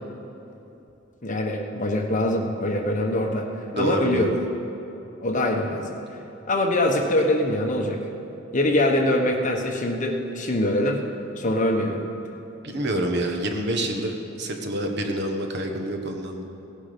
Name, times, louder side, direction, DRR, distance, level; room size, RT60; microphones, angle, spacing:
voice 1, 1.2-4.3 5.2-6.0 6.5-8.0 8.5-11.0 11.4-12.0, left 1 dB, 40° left, 2 dB, 1.3 m, -23 dB
voice 2, 3.7-4.4 12.6-16.4, right 1 dB, 60° right, 3 dB, 1.4 m, -27 dB
17.0 x 10.0 x 5.3 m, 2.9 s
head